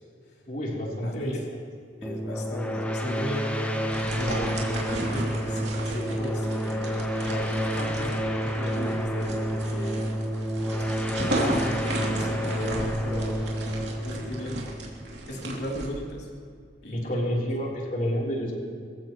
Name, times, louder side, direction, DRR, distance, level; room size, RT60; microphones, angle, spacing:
voice 1, 0.5-1.4 16.9-18.5, equal, 50° left, -4 dB, 3.6 m, -29 dB
voice 2, 1.0-1.4 2.0-3.6 4.1-10.1 11.4-11.8 12.2-13.3 14.0-14.7 15.3-16.3 16.8-17.1, left 1 dB, 70° left, -2 dB, 3.1 m, -36 dB
sound 1, 2.0-15.4, equal, 10° left, 1.0 m, -29 dB
sound 2, 3.9-15.9, right 1 dB, 75° right, 2.9 m, -34 dB
23.0 x 15.0 x 3.1 m, 2.2 s
head